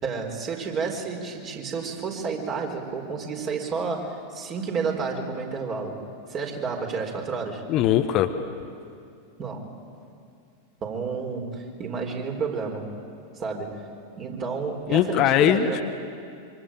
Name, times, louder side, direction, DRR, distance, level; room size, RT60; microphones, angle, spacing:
voice 1, 0.0-6.0 6.3-7.6 9.4-9.8 10.8-12.9 13.4-13.8 14.1-15.8, right 5 dB, 30° right, 2 dB, 4.4 m, -30 dB
voice 2, 7.7-8.3 14.9-15.8, left 11 dB, 35° left, 7 dB, 1.3 m, -20 dB
25.5 x 25.5 x 9.0 m, 2.3 s
figure-of-eight pair, 90°, 0 cm